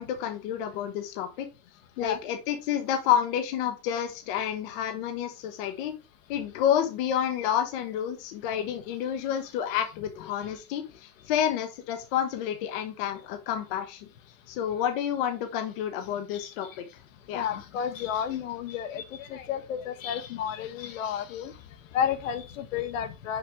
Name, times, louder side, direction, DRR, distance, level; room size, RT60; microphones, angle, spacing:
voice 1, 0.0-1.5 2.0-5.9 6.3-14.1 14.5-16.8 17.3-17.5, left 9 dB, 35° left, 0.8 m, -29 dB
voice 2, 17.3-21.5 21.9-23.4, left 8 dB, 55° left, 1.1 m, -31 dB
6.0 x 5.0 x 3.4 m
supercardioid pair, 160°, 47 cm